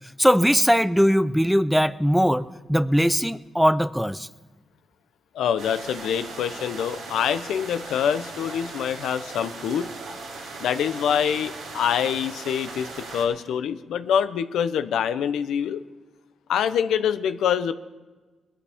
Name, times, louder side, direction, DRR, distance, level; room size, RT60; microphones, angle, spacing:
voice 1, 0.2-4.3, equal, ahead, 15 dB, 0.4 m, -20 dB
voice 2, 5.3-9.9 10.6-15.8 16.5-17.7, left 8 dB, 85° left, 11 dB, 0.7 m, -25 dB
sound 1, 5.6-13.2, right 3 dB, 85° right, 5.2 m, -38 dB
21.0 x 13.0 x 3.6 m, 1.3 s
cardioid pair, 90°, 0 cm